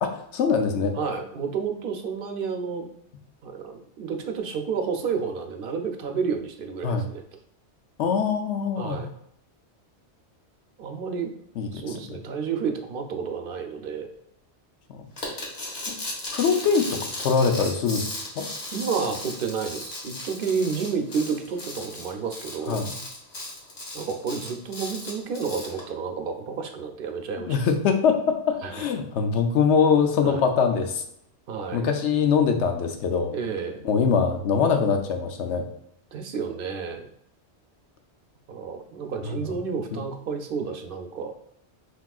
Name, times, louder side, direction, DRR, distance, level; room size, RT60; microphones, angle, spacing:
voice 1, 0.0-0.9 6.8-7.1 8.0-9.0 11.6-12.0 14.9-15.0 15.9-16.0 16.3-18.5 22.7-23.0 27.4-31.0 31.7-33.3 33.8-35.7 39.2-39.4 39.9-40.0, left 6 dB, 85° left, 6 dB, 0.9 m, -23 dB
voice 2, 0.9-2.9 3.4-7.2 8.8-9.1 10.8-11.3 11.7-14.1 18.7-22.8 23.9-27.6 28.6-28.8 30.2-30.4 31.5-31.9 33.3-33.8 36.1-37.1 38.5-41.3, right 5 dB, 60° right, 5 dB, 0.7 m, -30 dB
sound 1, 15.2-25.8, left 2 dB, 65° left, 1.4 m, -36 dB
5.9 x 2.9 x 2.3 m, 0.73 s
omnidirectional pair, 1.2 m